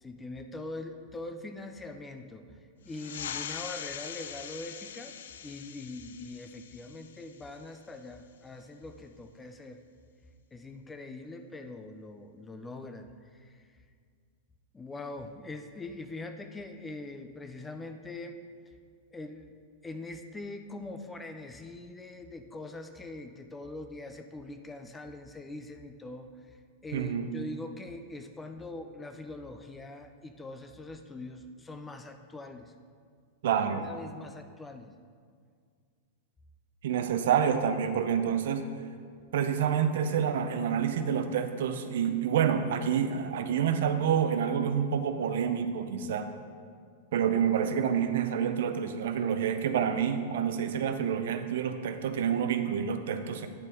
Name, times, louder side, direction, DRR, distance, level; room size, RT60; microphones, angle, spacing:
voice 1, 0.0-2.4 2.8-5.1 5.4-9.8 10.5-13.6 14.7-18.4 19.1-19.5 19.8-26.6 26.8-32.7 33.7-34.9, left 2 dB, 10° left, 7 dB, 0.3 m, -42 dB
sound 1, 2.9-8.0, left 9 dB, 80° left, 0.4 m, -42 dB
voice 2, 26.9-27.3 33.4-33.8 36.8-38.7 39.3-46.3 47.1-53.5, right 8 dB, 65° right, 9 dB, 0.6 m, -28 dB
9.8 x 6.7 x 3.6 m, 2.1 s
supercardioid pair, 170°, 0 cm